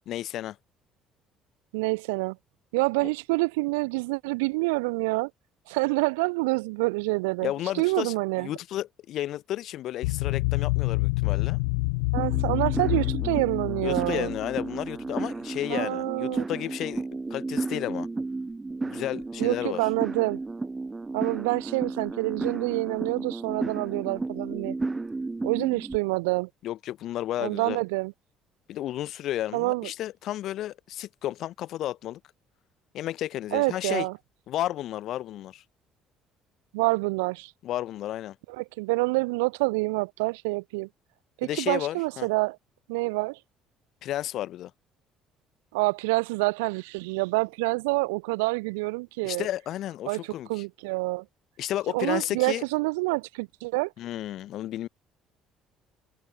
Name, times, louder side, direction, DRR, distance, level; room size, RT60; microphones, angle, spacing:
voice 1, 0.1-0.6 7.4-11.6 13.8-17.0 17.3-18.1 18.8-19.8 26.6-27.8 28.7-32.2 32.9-34.1 34.5-35.6 37.6-38.4 41.4-42.3 44.0-44.7 49.2-50.6 51.6-52.6 54.0-54.9, left 13 dB, 65° left, 4.6 m, -32 dB
voice 2, 1.7-2.4 2.7-5.3 5.7-7.5 7.8-8.5 12.1-14.3 15.7-16.4 19.4-20.4 21.1-24.7 25.4-26.5 27.4-28.1 29.5-29.9 33.5-34.2 36.7-37.5 38.5-40.9 41.4-42.6 42.9-43.4 45.7-49.5 50.1-51.2 51.9-53.9, right 26 dB, 85° right, 2.7 m, -27 dB
sound 1, 10.0-14.7, left 27 dB, 85° left, 0.5 m, -27 dB
sound 2, 12.2-26.0, right 3 dB, 20° right, 1.9 m, -33 dB
open air
supercardioid pair, 70°, 0 cm